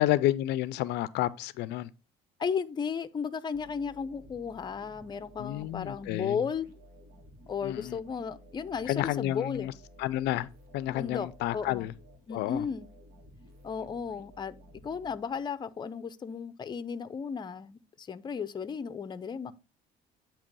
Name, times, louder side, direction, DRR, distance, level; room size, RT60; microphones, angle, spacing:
voice 1, 0.0-1.9 5.4-6.4 7.6-8.0 8.9-9.7 10.0-10.5 10.7-11.9 12.3-12.6, left 15 dB, 85° left, 0.4 m, -30 dB
voice 2, 2.4-6.7 7.5-9.7 10.9-11.9 12.3-12.9 13.6-14.6 14.8-19.5, left 6 dB, 25° left, 0.5 m, -34 dB
sound 1, 3.5-15.7, equal, 70° right, 1.7 m, -55 dB
8.5 x 2.9 x 5.3 m
cardioid pair, 110°, 17 cm